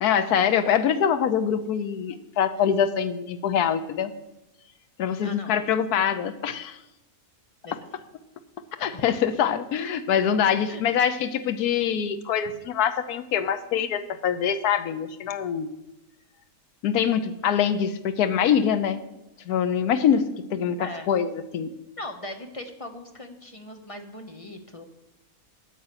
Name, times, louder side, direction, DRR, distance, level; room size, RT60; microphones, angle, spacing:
voice 1, 0.0-4.1 5.0-6.8 8.8-15.7 16.8-19.0 19.5-20.2 20.5-21.7, left 8 dB, 85° left, 10 dB, 1.2 m, -24 dB
voice 2, 5.2-5.7 7.6-7.8 8.9-9.4 10.6-10.8 20.8-21.1 22.0-24.9, left 1 dB, 25° left, 5 dB, 1.0 m, -40 dB
9.7 x 8.6 x 7.5 m, 0.96 s
omnidirectional pair, 1.6 m